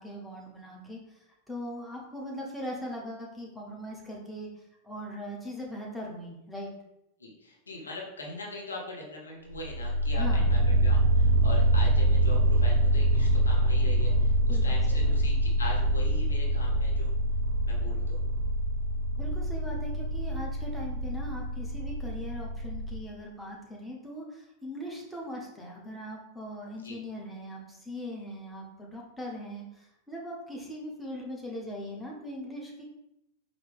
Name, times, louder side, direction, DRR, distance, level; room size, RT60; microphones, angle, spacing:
voice 1, 0.0-4.5 4.8-6.7 10.1-10.5 14.4-15.1 19.2-32.8, equal, 5° left, -3 dB, 0.9 m, -40 dB
voice 2, 7.2-17.1 17.7-18.2 26.8-27.0, left 2 dB, 75° left, -1 dB, 0.9 m, -41 dB
sound 1, 9.5-23.0, right 1 dB, 60° right, 0.3 m, -25 dB
4.5 x 2.5 x 3.4 m, 0.85 s
figure-of-eight pair, 90°, 0 cm